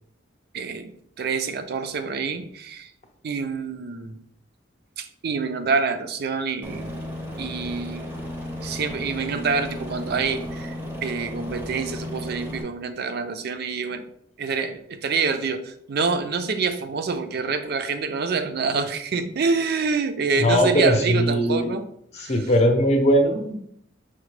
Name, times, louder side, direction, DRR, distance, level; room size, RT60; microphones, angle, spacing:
voice 1, 0.5-2.9 3.2-4.2 5.0-7.0 7.4-8.1 8.6-10.8 11.0-14.1 14.4-21.8 22.2-22.3, right 4 dB, 55° right, 9 dB, 0.4 m, -26 dB
Aircraft, 6.6-12.6, left 1 dB, 10° right, 0.6 m, -34 dB
voice 2, 20.3-21.7 22.1-23.6, equal, 35° left, 4 dB, 0.6 m, -20 dB
5.9 x 2.1 x 3.1 m, 0.69 s
head